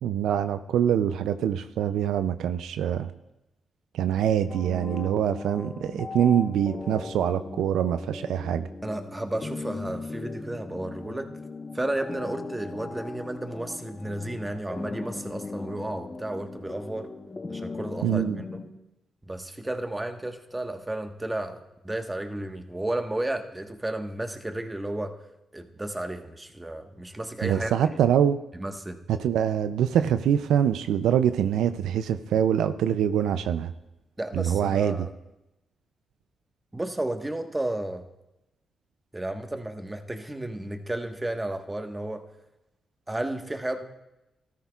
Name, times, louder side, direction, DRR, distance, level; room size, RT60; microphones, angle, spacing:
voice 1, 0.0-3.1 3.9-8.7 18.0-18.4 27.4-28.4 29.1-33.7 34.3-35.0, right 9 dB, 80° right, 11 dB, 0.4 m, -24 dB
sound 1, 4.5-18.7, left 3 dB, 35° left, 1.1 m, -38 dB
voice 2, 8.8-11.3 11.7-17.1 17.5-18.6 19.2-25.1 25.5-28.0 28.5-29.0 34.2-35.1 36.7-38.0 39.1-42.2 43.1-43.8, right 1 dB, 20° right, 5 dB, 1.3 m, -33 dB
13.5 x 13.5 x 2.4 m, 0.93 s
supercardioid pair, 50°, 0 cm